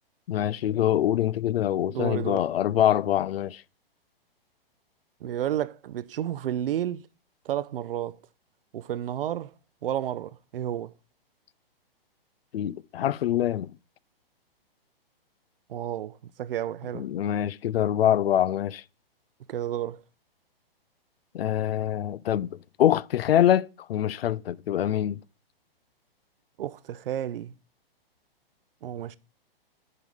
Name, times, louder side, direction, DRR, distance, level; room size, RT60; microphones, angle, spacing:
voice 1, 0.3-3.6 12.5-13.7 16.9-18.8 21.3-25.2, left 11 dB, 80° left, 0.4 m, -25 dB
voice 2, 1.9-2.4 5.2-7.0 7.5-8.2 8.7-9.5 9.8-10.9 15.7-17.1 19.5-20.0 26.6-27.5 28.8-29.2, right 11 dB, 65° right, 0.6 m, -31 dB
11.0 x 3.8 x 4.8 m
hypercardioid pair, 130°, 29 cm